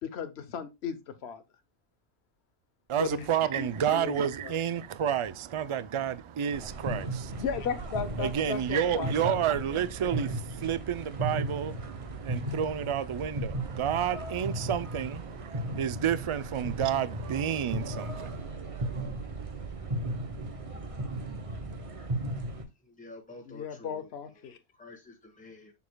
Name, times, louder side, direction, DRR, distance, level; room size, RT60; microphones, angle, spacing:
voice 1, 0.0-1.4 2.9-3.3 3.6-4.5 7.4-9.4 23.5-24.6, left 7 dB, 75° left, 1.1 m, -35 dB
voice 2, 2.9-7.4 8.2-18.4, right 9 dB, 50° right, 0.3 m, -30 dB
sound 1, 6.5-22.6, right 1 dB, 35° right, 0.9 m, -36 dB
voice 3, 22.8-24.1 24.8-25.7, left 2 dB, 5° left, 1.3 m, -49 dB
7.2 x 6.4 x 2.2 m
omnidirectional pair, 1.1 m